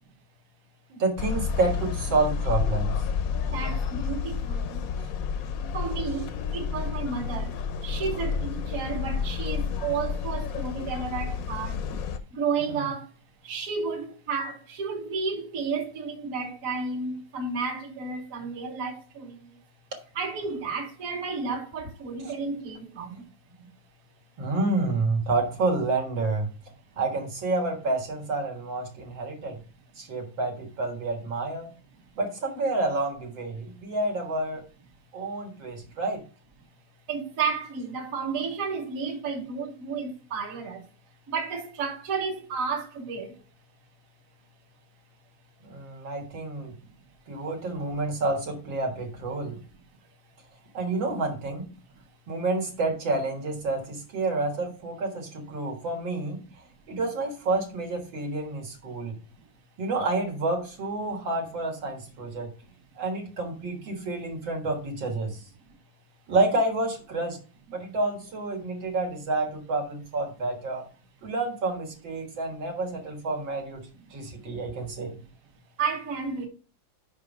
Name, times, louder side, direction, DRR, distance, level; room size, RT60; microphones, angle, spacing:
voice 1, 0.9-2.9 12.7-12.8 22.2-22.3 24.4-26.5 27.0-29.6 30.0-31.7 32.2-34.6 35.1-36.2 45.6-46.7 47.3-49.6 50.7-51.7 52.3-56.4 56.9-59.1 59.8-62.5 63.0-65.4 66.3-67.4 67.7-70.8 71.2-75.2, right 2 dB, 80° right, 2.4 m, -29 dB
sound 1, 1.2-12.2, left 6 dB, 65° left, 0.9 m, -30 dB
voice 2, 3.5-4.8 5.7-11.8 12.3-13.1 13.4-19.6 20.1-23.3 37.1-40.9 41.3-43.4 75.8-76.5, right 5 dB, 50° right, 1.4 m, -32 dB
5.5 x 5.1 x 5.2 m
omnidirectional pair, 2.1 m